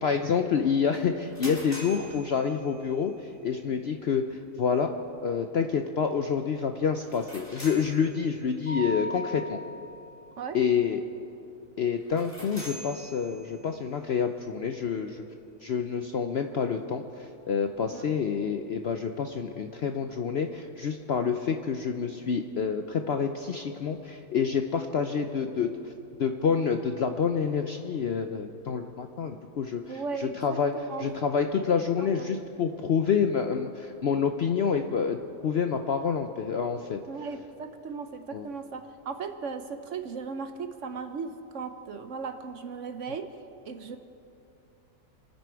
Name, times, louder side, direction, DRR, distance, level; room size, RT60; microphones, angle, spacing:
voice 1, 0.0-3.1 3.4-4.9 5.2-9.6 10.5-11.0 11.8-15.3 15.6-25.9 26.2-30.7 31.0-35.2 35.4-37.0 38.3-38.5, left 6 dB, 60° left, 6 dB, 0.7 m, -28 dB
sound 1, 0.9-3.2 6.9-8.6 12.0-13.8, equal, 10° left, 3.5 m, -45 dB
Mallet percussion, 8.7-10.4, equal, 35° right, 3.7 m, -38 dB
voice 2, 29.9-31.1 32.0-32.1 37.1-43.3 43.7-44.0, right 5 dB, 60° right, 8 dB, 1.0 m, -37 dB
27.5 x 9.8 x 4.6 m, 2.7 s
omnidirectional pair, 1.7 m